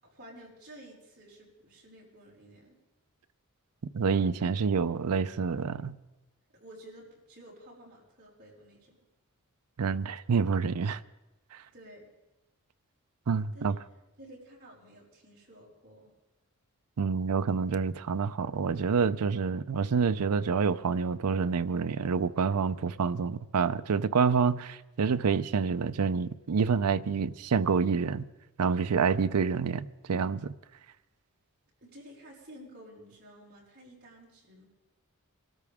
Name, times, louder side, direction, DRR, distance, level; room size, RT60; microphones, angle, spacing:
voice 1, 0.0-2.7 6.5-8.9 11.7-12.1 13.5-13.7 14.2-16.1 31.8-34.6, right 1 dB, 45° right, 5.5 m, -52 dB
voice 2, 3.9-5.9 9.8-11.0 11.5-11.6 13.3-13.7 17.0-28.3 28.6-30.5, right 5 dB, 85° right, 0.5 m, -27 dB
24.0 x 13.5 x 3.6 m
head